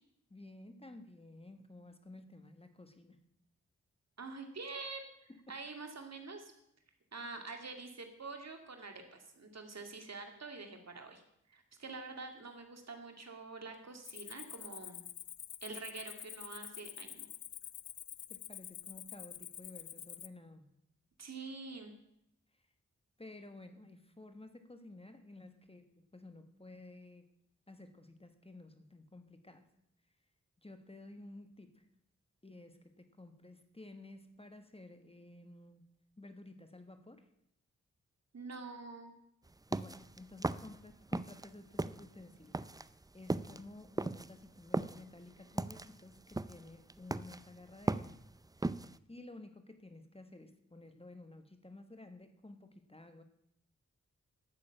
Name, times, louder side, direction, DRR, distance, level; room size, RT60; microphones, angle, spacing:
voice 1, 0.3-3.2 5.3-5.4 18.3-20.7 22.5-22.7 23.2-27.3 27.7-29.7 30.6-31.9 32.4-35.8 36.2-37.3 39.7-42.6 43.1-48.2 49.1-53.2, left 2 dB, 20° left, 8 dB, 1.3 m, -53 dB
voice 2, 4.2-6.5 7.1-11.2 11.5-15.0 15.6-17.3 21.2-21.9 38.3-39.1, right 3 dB, 60° right, 4 dB, 2.2 m, -46 dB
Cricket, 14.0-20.3, left 11 dB, 80° left, 0.5 m, -48 dB
sound 1, 39.5-41.5 41.7-49.0, right 2 dB, 15° right, 0.4 m, -37 dB
11.5 x 6.7 x 8.9 m, 0.77 s
cardioid pair, 55°, 30 cm